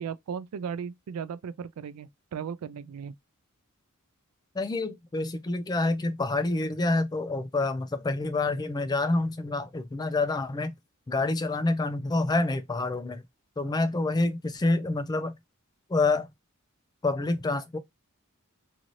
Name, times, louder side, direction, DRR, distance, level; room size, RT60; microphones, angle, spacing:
voice 1, 0.0-3.1, right 7 dB, 85° right, 0.3 m, -36 dB
voice 2, 4.5-10.7 11.1-13.2 13.6-15.3 15.9-16.3 17.0-17.8, left 2 dB, 20° left, 0.3 m, -27 dB
2.6 x 2.5 x 3.0 m
head